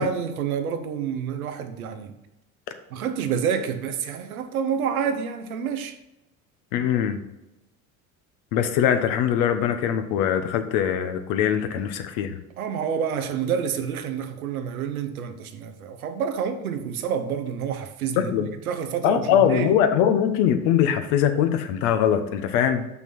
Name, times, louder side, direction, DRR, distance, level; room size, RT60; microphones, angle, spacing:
voice 1, 0.0-2.1 2.9-5.9 12.6-19.7, right 7 dB, 85° right, 7 dB, 0.9 m, -28 dB
voice 2, 6.7-7.2 8.5-12.4 18.2-18.5 19.0-22.9, left 9 dB, 65° left, 8 dB, 1.1 m, -22 dB
6.1 x 6.1 x 5.4 m, 0.92 s
hypercardioid pair, 70°, 42 cm